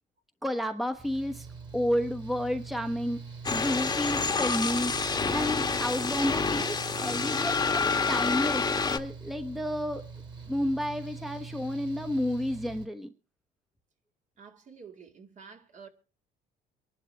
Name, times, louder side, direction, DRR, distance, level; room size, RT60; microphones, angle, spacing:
voice 1, 0.4-1.5 1.7-3.2 3.5-4.9 5.3-10.0 10.5-13.1, left 1 dB, ahead, 1.1 m, -31 dB
Mechanical fan, 1.0-12.9, right 5 dB, 25° right, 2.6 m, -44 dB
sound 1, 3.4-9.0, left 4 dB, 25° left, 1.3 m, -28 dB
voice 2, 14.4-15.9, right 6 dB, 45° right, 2.2 m, -49 dB
24.0 x 11.5 x 3.4 m
cardioid pair, 110°, 17 cm